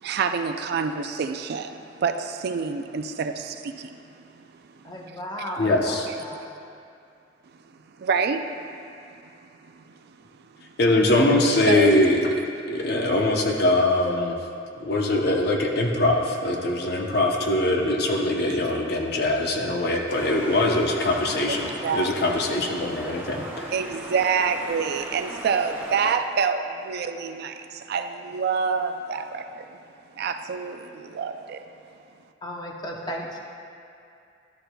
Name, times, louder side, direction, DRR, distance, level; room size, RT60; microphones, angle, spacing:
voice 1, 0.0-4.4 8.0-8.4 9.8-9.9 11.7-11.9 21.5-22.1 23.7-29.7 30.2-31.6, right 5 dB, 60° right, 8 dB, 0.3 m, -27 dB
voice 2, 4.8-6.4 32.4-33.4, equal, 25° left, 0 dB, 0.7 m, -34 dB
voice 3, 5.6-6.1 10.8-12.3 12.7-14.4 14.8-21.7 21.9-23.7, left 1 dB, 60° left, 0 dB, 0.8 m, -22 dB
sound 1, 20.1-26.1, right 1 dB, 15° right, 1.4 m, -38 dB
12.0 x 6.7 x 2.2 m, 2.5 s
head